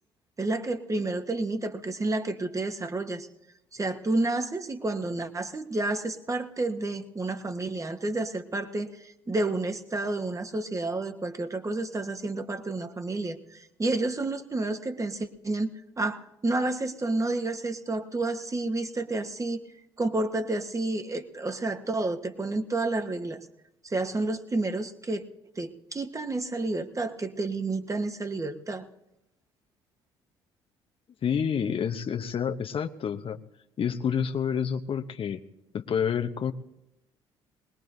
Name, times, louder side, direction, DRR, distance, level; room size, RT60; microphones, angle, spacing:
voice 1, 0.4-3.3 3.7-19.6 20.0-23.5 23.8-25.2 25.6-28.9, right 2 dB, 25° right, 6 dB, 1.3 m, -30 dB
voice 2, 31.2-33.4 33.8-35.4 35.7-36.5, left 7 dB, 40° left, 9 dB, 0.8 m, -28 dB
21.5 x 20.0 x 2.7 m, 0.88 s
hypercardioid pair, 50°, 14 cm